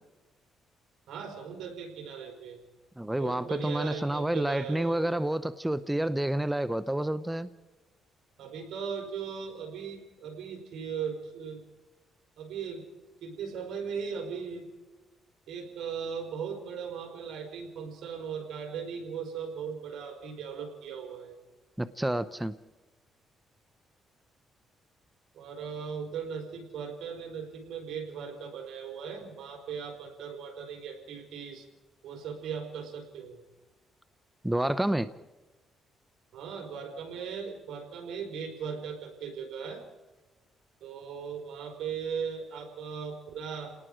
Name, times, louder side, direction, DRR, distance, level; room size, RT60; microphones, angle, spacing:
voice 1, 1.1-2.6 3.2-5.2 8.4-11.6 12.4-12.8 13.2-14.7 15.5-21.4 25.3-31.7 32.0-33.4 36.3-39.8 40.8-43.8, right 6 dB, 75° right, 4 dB, 4.3 m, -38 dB
voice 2, 3.0-7.5 21.8-22.5 34.4-35.1, right 1 dB, 10° right, 14 dB, 0.6 m, -29 dB
29.5 x 19.0 x 5.0 m, 1.1 s
cardioid pair, 90°, 0 cm